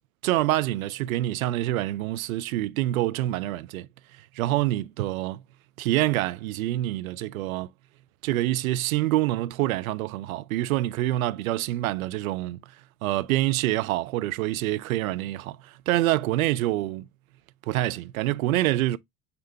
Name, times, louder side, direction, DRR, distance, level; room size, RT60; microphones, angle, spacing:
voice 1, 0.2-3.9 4.4-5.4 5.8-7.7 8.2-12.6 13.0-15.6 15.9-17.1 17.7-19.0, right 15 dB, 60° right, 0.5 m, -26 dB
6.7 x 2.4 x 2.7 m
figure-of-eight pair, 80°, 49 cm